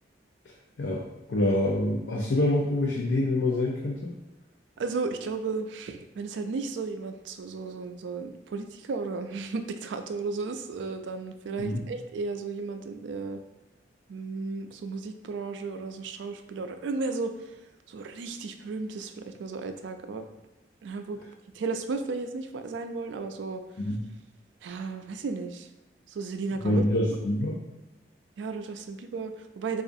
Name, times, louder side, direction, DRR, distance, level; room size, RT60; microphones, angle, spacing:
voice 1, 0.8-4.1 11.6-11.8 23.8-24.0 26.6-27.6, left 1 dB, 90° left, -2 dB, 0.5 m, -26 dB
voice 2, 4.8-13.4 14.1-17.3 17.9-20.2 20.8-21.2 21.5-23.6 24.6-25.7 26.1-26.8 28.4-29.8, right 4 dB, 85° right, 7 dB, 0.3 m, -34 dB
4.8 x 2.4 x 2.6 m, 1.0 s
head